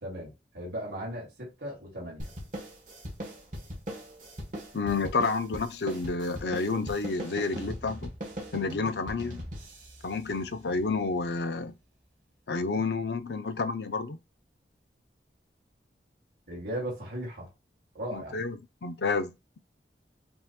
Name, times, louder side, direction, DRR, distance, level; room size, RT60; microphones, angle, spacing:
voice 1, 0.0-2.3 16.5-17.5 17.9-18.4, right 1 dB, 75° right, 2.5 m, -37 dB
sound 1, 2.2-11.0, equal, 45° right, 1.4 m, -40 dB
voice 2, 4.7-8.1 8.5-9.4 10.0-11.7 12.5-14.2 18.1-19.3, left 4 dB, 75° left, 0.6 m, -30 dB
5.4 x 2.9 x 2.3 m
head